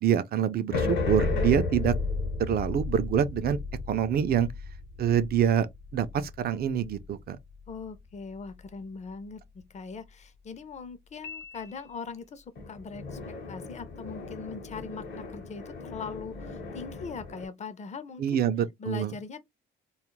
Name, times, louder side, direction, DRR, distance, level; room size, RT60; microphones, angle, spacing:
voice 1, 0.0-1.9 2.5-3.6 3.9-4.5 5.0-5.7 5.9-7.4 18.2-19.1, right 9 dB, 50° right, 0.4 m, -26 dB
sound 1, 0.7-7.2 12.6-17.5, left 3 dB, 60° left, 0.8 m, -34 dB
voice 2, 7.7-18.5 18.8-19.4, left 5 dB, 35° left, 0.5 m, -41 dB
Piano, 11.2-12.3, left 6 dB, 90° left, 0.8 m, -45 dB
2.3 x 2.0 x 3.0 m
cardioid pair, 90°, 20 cm